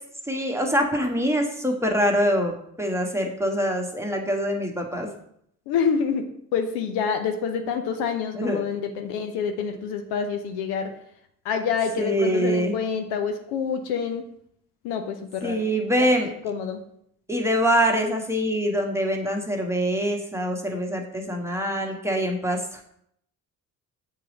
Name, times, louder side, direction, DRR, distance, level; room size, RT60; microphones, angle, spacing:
voice 1, 0.3-5.1 8.3-8.6 12.0-12.8 15.4-16.3 17.3-22.6, equal, 5° right, 1 dB, 1.3 m, -24 dB
voice 2, 5.7-6.2 6.5-10.9 11.4-14.2 14.8-15.6 16.0-16.1 16.4-16.8, left 6 dB, 60° left, 6 dB, 0.8 m, -27 dB
7.6 x 4.7 x 4.0 m, 0.70 s
figure-of-eight pair, 45°, 46 cm